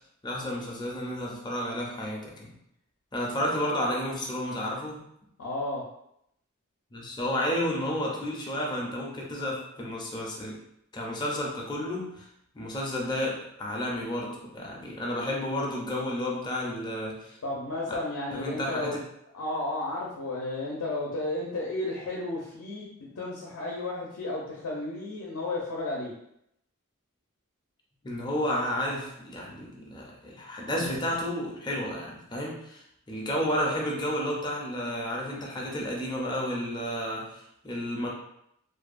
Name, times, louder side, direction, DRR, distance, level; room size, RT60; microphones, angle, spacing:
voice 1, 0.2-2.6 3.1-5.0 6.9-10.6 10.9-12.3 12.5-17.4 18.3-19.0 28.0-38.1, left 1 dB, 20° left, -2 dB, 0.5 m, -31 dB
voice 2, 5.4-5.8 17.4-19.0 19.3-26.1, left 2 dB, 75° left, -4 dB, 0.5 m, -33 dB
2.6 x 2.1 x 2.4 m, 0.75 s
head